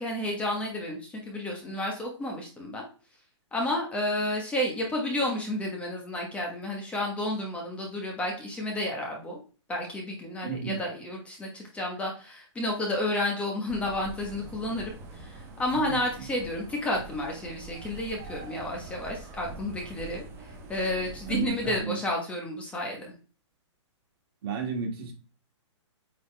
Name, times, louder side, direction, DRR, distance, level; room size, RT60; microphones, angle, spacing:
voice 1, 0.0-2.8 3.5-9.4 9.7-23.1, left 1 dB, 10° left, 1.2 m, -31 dB
voice 2, 10.4-10.8 15.7-16.0 21.3-22.0 24.4-25.1, right 6 dB, 50° right, 2.2 m, -32 dB
sound 1, 13.7-21.8, right 3 dB, 15° right, 1.0 m, -44 dB
9.0 x 4.0 x 3.3 m
hypercardioid pair, 165°, 16 cm